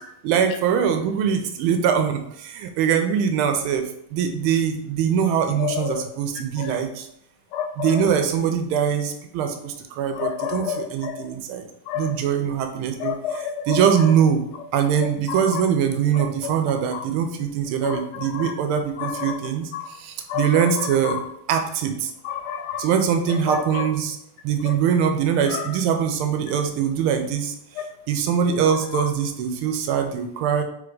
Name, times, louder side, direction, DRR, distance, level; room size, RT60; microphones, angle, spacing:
voice 1, 0.2-3.8 4.1-7.1 7.8-10.6 10.9-11.6 12.0-13.1 13.7-14.4 14.7-21.2 21.5-22.1 22.8-24.2 24.4-27.5 28.1-30.6, right 8 dB, 80° right, 6 dB, 1.4 m, -22 dB
voice 2, 5.6-6.1 6.6-6.8 7.5-8.2 10.1-11.3 11.9-12.2 13.0-14.1 15.0-15.6 16.1-16.5 16.9-17.1 17.8-18.5 19.0-19.4 19.7-20.0 20.3-21.2 22.2-22.9 23.3-23.9 24.6-24.8 25.5-25.7 26.5-26.6 27.8-27.9 28.7-29.1, left 8 dB, 80° left, 5 dB, 1.4 m, -30 dB
3.4 x 3.3 x 3.8 m, 0.75 s
omnidirectional pair, 2.4 m